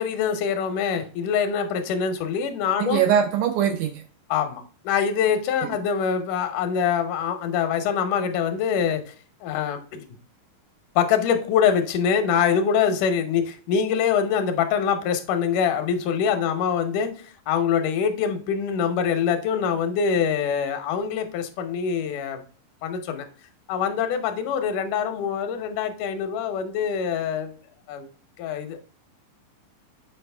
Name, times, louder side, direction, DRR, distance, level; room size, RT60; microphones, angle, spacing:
voice 1, 0.0-3.0 4.3-9.0 9.4-10.0 11.0-17.1 17.5-22.4 22.8-23.3 23.7-27.5 27.9-28.1 28.4-28.8, left 7 dB, 70° left, 2.3 m, -24 dB
voice 2, 2.8-4.0 5.6-5.7, right 8 dB, 75° right, 1.9 m, -22 dB
7.9 x 5.1 x 3.4 m
omnidirectional pair, 4.0 m